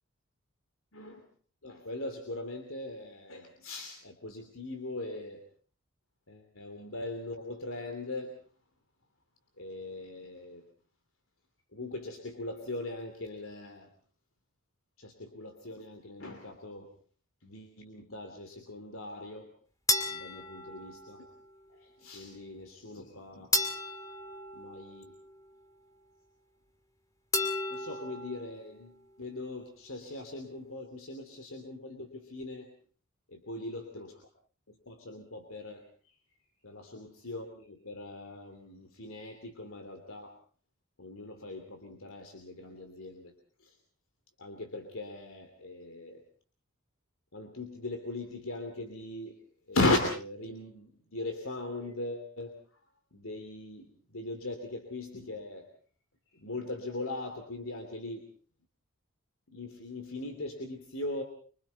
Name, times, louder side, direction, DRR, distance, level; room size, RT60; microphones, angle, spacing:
voice 1, 0.9-1.2 1.6-5.4 6.3-8.3 9.6-10.6 11.7-13.9 15.0-16.9 17.4-19.5 20.1-21.3 21.7-23.5 24.5-25.1 27.7-32.7 33.3-34.2 34.7-35.8 36.6-40.3 41.0-43.3 43.6-43.7 44.4-46.2 47.3-49.3 49.7-52.6 53.1-55.7 56.3-58.3 59.5-61.2, left 2 dB, 80° left, 5 dB, 2.8 m, -39 dB
sound 1, 19.9-21.4 23.5-25.4 27.3-28.5, left 2 dB, 15° left, 2.3 m, -33 dB
25.5 x 24.5 x 4.1 m, 0.43 s
head